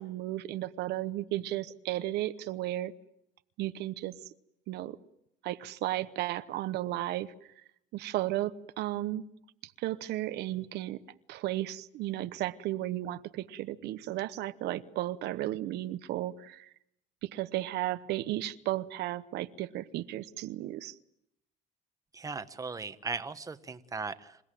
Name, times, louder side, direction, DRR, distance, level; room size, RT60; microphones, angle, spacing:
voice 1, 0.0-2.9 3.6-4.1 4.7-5.0 5.4-7.3 7.9-9.2 9.6-11.0 11.3-16.7 17.2-20.9, right 15 dB, 80° right, 12 dB, 0.9 m, -34 dB
voice 2, 22.1-24.4, right 4 dB, 20° right, 10 dB, 1.2 m, -38 dB
28.0 x 16.5 x 9.2 m, 0.79 s
cardioid pair, 110°, 17 cm